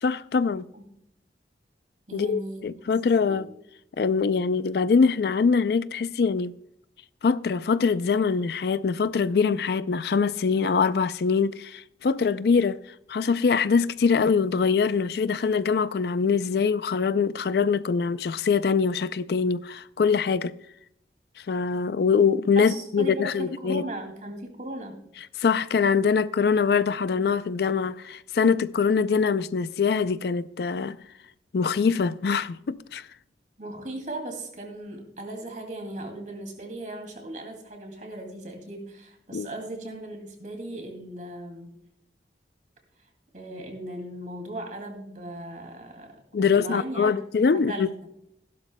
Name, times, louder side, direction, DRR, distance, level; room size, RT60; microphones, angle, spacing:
voice 1, 0.0-0.7 2.1-3.5 4.0-6.5 7.2-12.8 13.1-20.5 21.5-23.8 25.4-31.0 31.5-33.1 39.3-39.5 46.3-47.9, left 5 dB, 60° left, 0.4 m, -23 dB
voice 2, 2.1-2.9 3.3-3.4 22.6-25.0 33.6-41.7 43.3-47.2 47.5-48.1, right 1 dB, 45° right, 2.4 m, -37 dB
16.0 x 12.0 x 2.2 m
head